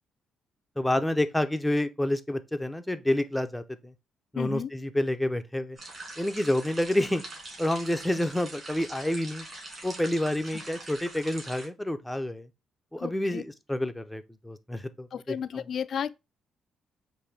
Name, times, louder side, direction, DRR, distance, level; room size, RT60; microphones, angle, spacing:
voice 1, 0.8-3.9 4.3-5.8 6.2-7.2 7.6-9.5 9.8-12.5 12.9-15.6, left 1 dB, 5° left, 0.6 m, -28 dB
voice 2, 4.4-4.7 10.5-10.6 13.0-13.4 15.1-16.1, left 8 dB, 60° left, 0.3 m, -33 dB
sound 1, 5.8-11.7, right 2 dB, 35° right, 2.7 m, -43 dB
5.3 x 2.6 x 3.2 m
cardioid pair, 90°, 0 cm